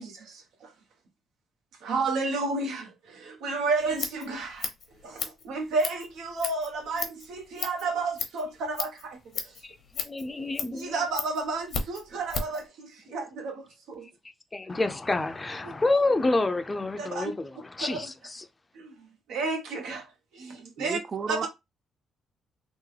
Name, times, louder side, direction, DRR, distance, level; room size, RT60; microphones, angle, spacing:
voice 1, 1.9-2.8 3.4-4.5 5.5-6.0 6.4-7.0 7.6-8.4 8.8-8.9 10.9-12.2 13.1-13.2 17.2-17.3 19.3-20.0 20.8-21.0 21.4-21.5, right 3 dB, 85° right, 0.9 m, -29 dB
Scissors, 3.7-12.6, left 5 dB, 65° left, 0.8 m, -36 dB
voice 2, 9.6-11.0 14.5-18.5, left 2 dB, 20° left, 0.5 m, -28 dB
voice 3, 20.8-21.5, right 6 dB, 45° right, 0.4 m, -32 dB
3.6 x 2.0 x 3.2 m
cardioid pair, 90°, 0 cm